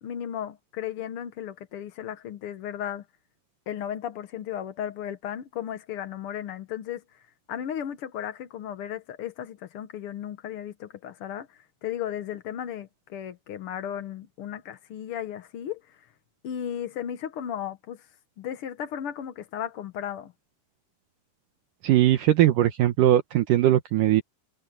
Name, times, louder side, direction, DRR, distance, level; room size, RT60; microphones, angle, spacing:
voice 1, 0.0-3.0 3.7-7.2 7.5-15.8 16.4-18.0 18.4-20.3, left 10 dB, 80° left, 1.2 m, -35 dB
voice 2, 21.8-24.2, right 13 dB, 70° right, 2.5 m, -20 dB
omnidirectional pair, 4.1 m